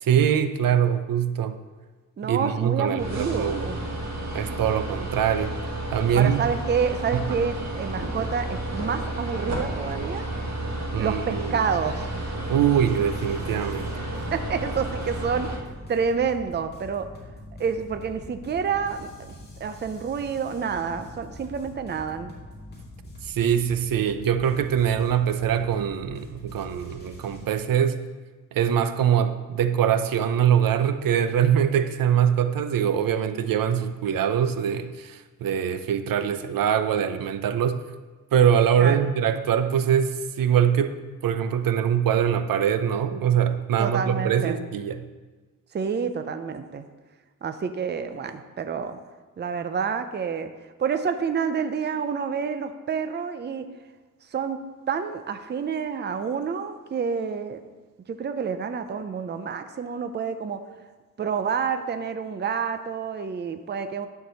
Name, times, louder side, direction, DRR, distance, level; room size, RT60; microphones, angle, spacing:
voice 1, 0.0-1.6 2.2-3.7 4.3-5.5 5.9-6.4 10.9-11.6 12.5-13.9 23.2-28.0 28.5-37.8 38.3-41.0 41.2-45.1, right 9 dB, 80° right, 10 dB, 0.7 m, -23 dB
voice 2, 2.2-3.8 4.4-4.6 6.1-10.3 11.0-12.1 14.3-15.5 15.9-17.1 17.6-19.1 19.6-22.3 38.8-39.1 43.8-44.6 45.7-46.9 47.4-49.0 49.4-50.5 50.8-53.7 54.3-54.6 54.9-57.6 58.1-60.6 61.2-64.1, right 6 dB, 30° right, 9 dB, 0.5 m, -28 dB
sound 1, 3.0-15.6, right 1 dB, 55° right, 1.7 m, -31 dB
sound 2, 12.0-27.5, left 1 dB, 30° left, 2.1 m, -44 dB
10.5 x 4.7 x 6.8 m, 1.3 s
wide cardioid pair, 155°, 33 cm